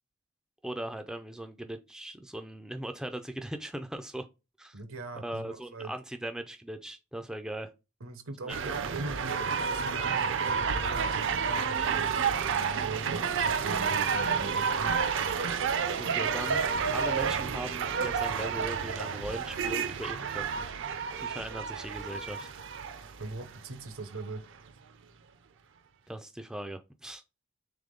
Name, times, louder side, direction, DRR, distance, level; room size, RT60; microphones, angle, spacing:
voice 1, 0.6-4.3 4.6-4.8 5.2-7.7 8.4-9.7 16.0-20.7 21.2-22.5 26.1-27.2, right 1 dB, 5° right, 0.3 m, -39 dB
voice 2, 4.7-5.9 8.0-14.9 23.2-24.4, right 3 dB, 80° right, 0.8 m, -41 dB
sound 1, 8.5-23.6 24.2-24.3, right 6 dB, 60° right, 0.5 m, -30 dB
3.4 x 3.4 x 3.8 m
head